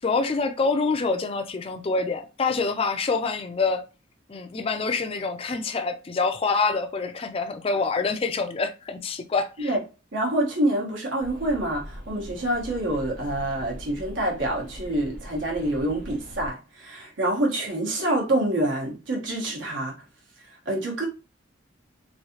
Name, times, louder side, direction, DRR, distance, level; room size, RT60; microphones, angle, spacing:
voice 1, 0.0-3.8 4.3-9.8, left 4 dB, 30° left, 0.4 m, -26 dB
voice 2, 10.1-20.0 20.6-21.1, right 1 dB, 70° right, 1.2 m, -26 dB
sound 1, 11.2-16.5, equal, 55° right, 1.0 m, -41 dB
3.1 x 2.7 x 2.8 m
head